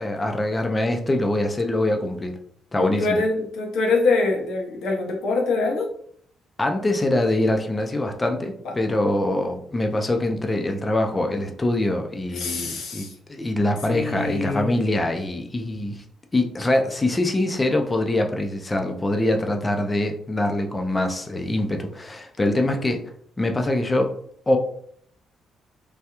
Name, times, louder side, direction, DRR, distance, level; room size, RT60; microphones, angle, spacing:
voice 1, 0.0-2.4 2.7-3.2 6.6-13.0 13.3-16.0 16.3-23.0 23.4-24.1 24.5-24.6, left 1 dB, 20° left, 4 dB, 0.5 m, -24 dB
voice 2, 2.8-5.9 8.6-8.7 12.3-13.1 13.9-14.8, left 3 dB, 75° left, 1 dB, 0.8 m, -24 dB
3.3 x 2.3 x 2.9 m, 0.64 s
cardioid pair, 90°, 0 cm